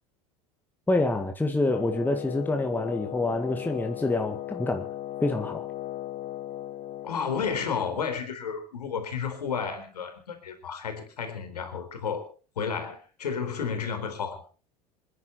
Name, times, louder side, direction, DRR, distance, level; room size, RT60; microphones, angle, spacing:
voice 1, 0.9-4.9 5.2-5.7, left 2 dB, 10° left, 2.0 m, -27 dB
Wind instrument woodwind instrument, 1.6-7.3, left 14 dB, 40° left, 0.9 m, -37 dB
voice 2, 7.0-12.3 12.6-14.4, left 6 dB, 80° left, 4.0 m, -32 dB
28.0 x 10.5 x 4.4 m
figure-of-eight pair, 75°, 20 cm